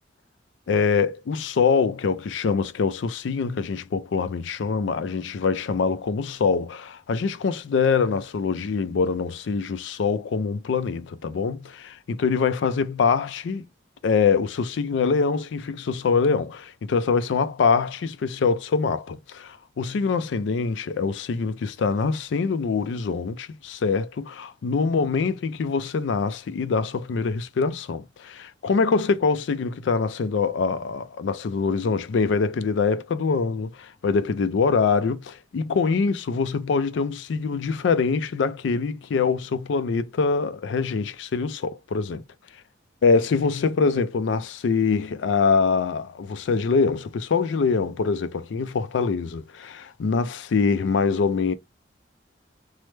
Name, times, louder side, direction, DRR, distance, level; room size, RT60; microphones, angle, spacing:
voice 1, 0.7-13.7 14.0-42.2 43.0-51.5, left 5 dB, 75° left, 0.4 m, -24 dB
3.1 x 2.0 x 3.1 m
head